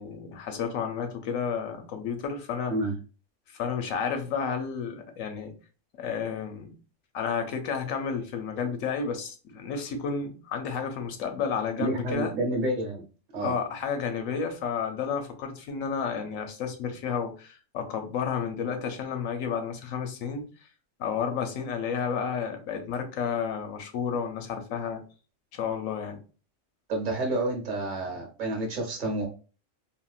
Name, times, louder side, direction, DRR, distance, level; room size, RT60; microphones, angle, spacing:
voice 1, 0.0-2.7 3.5-5.5 6.0-6.7 7.1-12.3 13.4-20.5 21.0-25.0 25.5-26.2, left 6 dB, 85° left, 1.0 m, -31 dB
voice 2, 11.8-13.0 13.3-13.5 26.9-29.3, right 1 dB, 45° right, 0.9 m, -29 dB
3.6 x 2.1 x 2.3 m
omnidirectional pair, 1.4 m